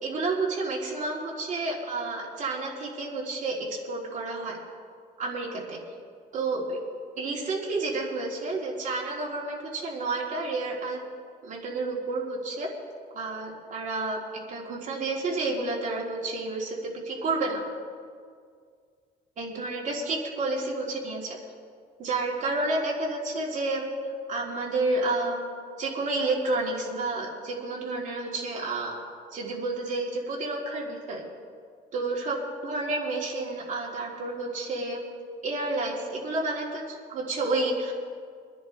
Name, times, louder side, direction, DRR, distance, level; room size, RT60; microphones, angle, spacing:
voice 1, 0.0-4.6 5.2-5.8 6.3-6.8 7.2-11.0 11.4-12.7 13.1-14.2 14.5-17.6 19.4-21.4 22.0-24.0 24.3-25.5 25.8-29.0 29.3-31.2 31.9-35.0 35.4-37.9, right 2 dB, 50° right, -3 dB, 3.5 m, -30 dB
25.0 x 10.5 x 3.5 m, 2.1 s
cardioid pair, 110°, 17 cm